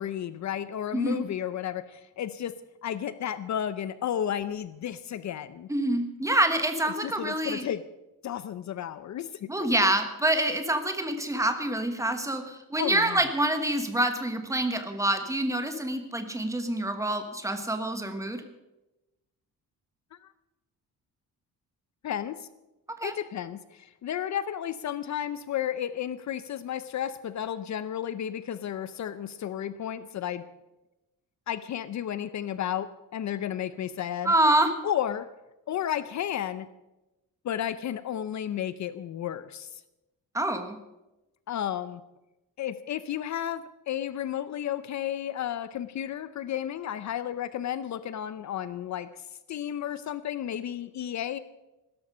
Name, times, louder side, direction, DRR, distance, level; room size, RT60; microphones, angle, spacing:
voice 1, 0.0-2.5 2.8-5.7 6.9-7.8 8.2-9.9 12.8-13.3 22.0-22.5 23.0-30.4 31.5-34.3 34.8-35.3 35.7-36.7 37.4-39.8 41.5-42.0 42.6-49.1 49.5-51.4, left 10 dB, 55° left, 14 dB, 0.6 m, -33 dB
voice 2, 0.9-1.2 5.7-7.6 9.5-18.4 23.0-23.1 34.2-34.7 40.3-40.8, right 1 dB, 10° right, 7 dB, 1.3 m, -26 dB
16.5 x 13.0 x 5.4 m, 0.99 s
wide cardioid pair, 175°, 35 cm